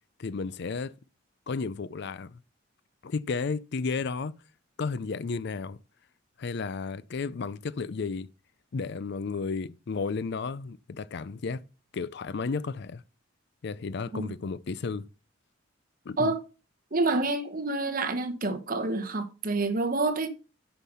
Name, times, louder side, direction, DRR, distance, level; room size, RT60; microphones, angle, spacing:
voice 1, 0.2-0.9 1.5-2.4 3.0-4.3 4.8-5.8 6.4-8.3 8.7-11.6 11.9-13.0 13.6-15.1 16.1-16.4, left 4 dB, 60° left, 0.5 m, -33 dB
voice 2, 16.9-20.3, right 2 dB, 45° right, 1.1 m, -28 dB
8.2 x 6.0 x 5.5 m
head